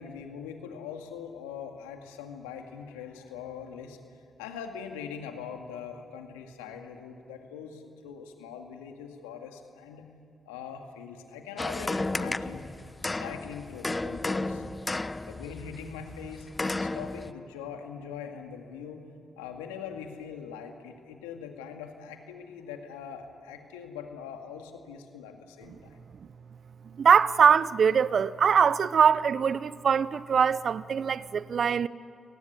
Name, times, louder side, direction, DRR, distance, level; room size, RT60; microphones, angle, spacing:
voice 1, 0.0-4.0 4.4-10.0 10.5-12.7 13.2-14.6 15.3-19.0 19.4-26.0, left 7 dB, 90° left, 2.1 m, -42 dB
sound 1, 11.6-17.3, left 2 dB, 25° left, 1.0 m, -33 dB
voice 2, 26.8-31.9, right 7 dB, 60° right, 0.7 m, -22 dB
29.5 x 19.0 x 9.8 m
hypercardioid pair, 40°, 0 cm